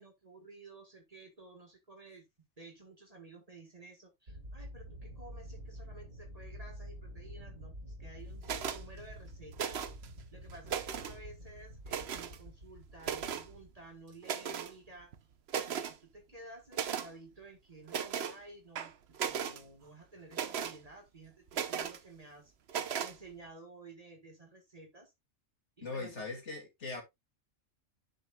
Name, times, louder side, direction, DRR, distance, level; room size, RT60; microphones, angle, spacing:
voice 1, 0.0-2.2 2.6-9.8 10.3-15.1 15.6-25.1 25.8-26.2, right 2 dB, 30° right, 1.7 m, -53 dB
sound 1, 4.3-14.4, equal, 90° right, 3.8 m, -48 dB
Porte ascenseur, 8.4-8.8 9.5-10.1 10.5-11.2 11.9-12.4 13.0-13.5 14.2-14.7 15.1-15.2 15.5-15.9 16.7-17.1 17.9-18.4 18.7-19.6 20.3-20.8 21.5-22.0 22.7-23.1, right 8 dB, 60° right, 1.0 m, -36 dB
voice 2, 25.8-27.0, left 3 dB, 60° left, 2.7 m, -40 dB
10.0 x 6.4 x 2.3 m
omnidirectional pair, 1.3 m